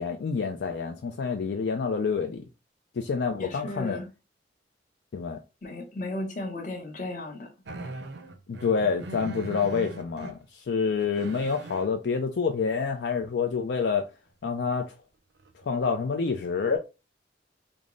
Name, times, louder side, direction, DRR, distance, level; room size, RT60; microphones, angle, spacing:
voice 1, 0.0-2.4 2.9-4.0 5.1-5.4 8.5-14.1 14.4-14.9 15.6-16.8, left 5 dB, 70° left, 0.4 m, -27 dB
voice 2, 3.4-4.1 5.6-7.5, left 2 dB, 45° left, 0.9 m, -35 dB
sound 1, 7.7-10.4 10.9-11.9 14.7-14.8 15.4-15.7, right 2 dB, 75° right, 0.5 m, -40 dB
3.5 x 2.0 x 3.7 m
head